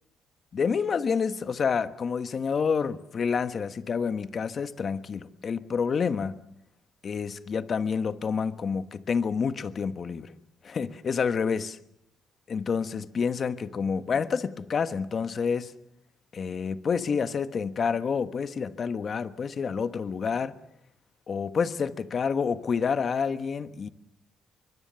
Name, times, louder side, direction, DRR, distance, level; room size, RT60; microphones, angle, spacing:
voice 1, 0.5-6.3 7.0-10.3 10.6-11.8 12.5-15.7 16.3-20.6 21.3-23.9, left 6 dB, 45° left, 1.3 m, -28 dB
24.0 x 23.0 x 6.9 m
cardioid pair, 90°, 0 cm